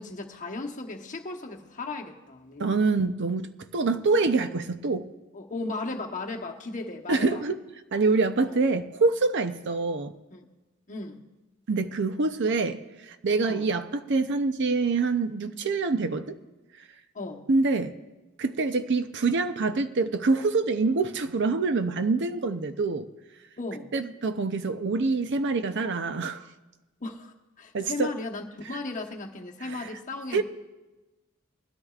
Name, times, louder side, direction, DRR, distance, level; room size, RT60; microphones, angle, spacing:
voice 1, 0.0-2.8 5.3-7.4 8.4-8.6 10.3-10.4 10.9-11.2 13.5-13.7 17.1-17.4 23.6-23.9 27.0-30.4, left 3 dB, 40° left, 2 dB, 1.0 m, -36 dB
voice 2, 2.6-5.1 7.1-7.6 7.9-10.1 11.7-12.8 13.1-16.4 17.5-17.9 18.4-23.1 23.9-26.4 27.7-28.1 29.7-29.9 30.3-30.4, right 3 dB, 55° right, 10 dB, 0.6 m, -25 dB
20.5 x 13.0 x 2.4 m, 1.1 s
head